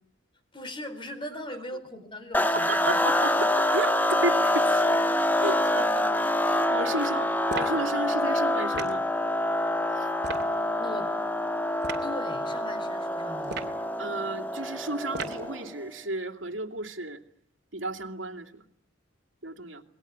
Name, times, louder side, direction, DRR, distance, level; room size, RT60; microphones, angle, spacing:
voice 1, 0.5-3.0 10.8-11.1 12.0-13.6, left 1 dB, 25° left, 10 dB, 4.3 m, -39 dB
sound 1, 2.3-15.7, left 1 dB, 10° left, 1.2 m, -26 dB
voice 2, 2.5-5.0 5.4-6.1 6.4-9.1 9.9-10.1 14.0-17.2 17.7-18.6 19.4-19.8, right 2 dB, 70° right, 3 dB, 2.6 m, -33 dB
sound 2, 7.5-7.8 8.7-9.0 10.2-10.5 11.8-12.1 13.4-13.8 15.1-15.5, right 4 dB, 55° right, 2.7 m, -36 dB
28.0 x 21.0 x 9.5 m, 0.69 s
head